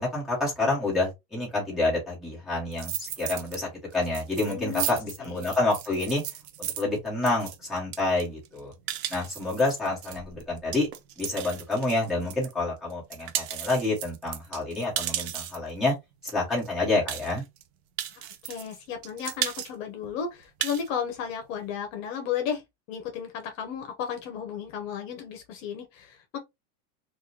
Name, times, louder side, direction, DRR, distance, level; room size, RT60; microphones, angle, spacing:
voice 1, 0.0-6.2 6.8-8.7 9.1-10.9 11.2-15.9 16.2-17.4, left 2 dB, ahead, 1.4 m, -28 dB
sound 1, 2.7-3.6 3.9-12.5 12.9-15.7 16.3-16.4 16.6-16.7 17.1-17.6 18.0-18.8 19.0-19.7 20.0-20.1 20.4-20.9, right 11 dB, 45° right, 0.5 m, -35 dB
voice 2, 4.5-4.9 5.2-5.5 18.2-22.6 22.9-26.4, left 8 dB, 55° left, 1.0 m, -34 dB
3.7 x 2.5 x 2.8 m
supercardioid pair, 175°, 46 cm